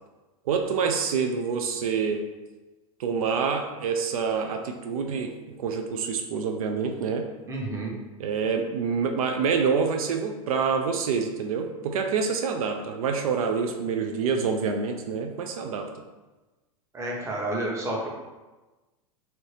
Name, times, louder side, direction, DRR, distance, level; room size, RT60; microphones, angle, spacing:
voice 1, 0.5-2.3 3.0-7.3 8.2-15.9, right 5 dB, 80° right, 4 dB, 0.4 m, -27 dB
voice 2, 7.5-7.9 16.9-18.1, right 1 dB, 15° right, -2 dB, 0.8 m, -30 dB
2.8 x 2.7 x 3.2 m, 1.2 s
hypercardioid pair, 110°, 18 cm